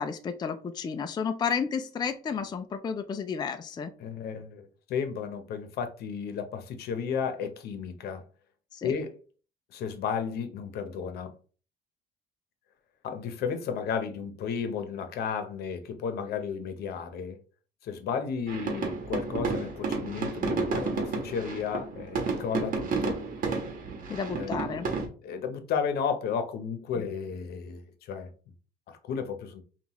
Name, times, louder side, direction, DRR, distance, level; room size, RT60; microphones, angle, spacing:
voice 1, 0.0-3.9 8.7-8.9 24.1-24.9, left 6 dB, 25° left, 0.4 m, -32 dB
voice 2, 4.0-8.2 8.8-9.2 9.7-11.3 13.0-17.4 17.8-23.2 24.4-24.6 25.0-28.3 28.9-29.6, left 6 dB, 70° left, 0.8 m, -33 dB
sound 1, 18.5-25.1, right 4 dB, 55° right, 1.3 m, -31 dB
5.4 x 2.4 x 3.0 m
cardioid pair, 110°, 17 cm